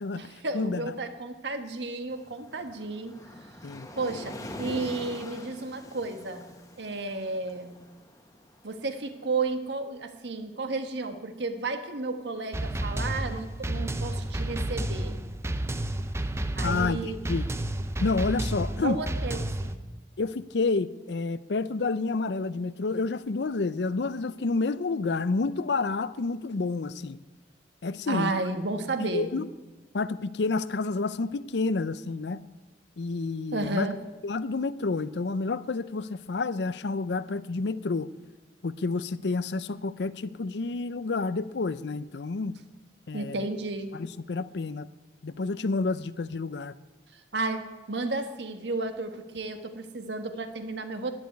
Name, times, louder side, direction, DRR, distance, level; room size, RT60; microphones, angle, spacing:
voice 1, 0.1-3.1 3.9-6.5 6.8-7.8 8.6-15.2 16.6-17.2 18.8-19.8 28.1-29.3 33.5-34.0 43.1-43.9 47.1-51.1, right 3 dB, 75° right, 7 dB, 1.4 m, -32 dB
Waves surf, 2.1-9.2, left 1 dB, 20° left, 1.4 m, -44 dB
sound 1, 12.5-19.7, right 1 dB, 15° right, 0.7 m, -31 dB
voice 2, 16.6-17.4 18.0-19.0 20.2-27.2 27.8-28.3 29.0-29.5 29.9-32.4 33.0-33.9 34.2-38.1 38.6-42.6 43.1-43.5 43.9-44.9 45.2-46.7, left 3 dB, 70° left, 16 dB, 0.6 m, -29 dB
11.0 x 10.5 x 9.4 m, 1.2 s
head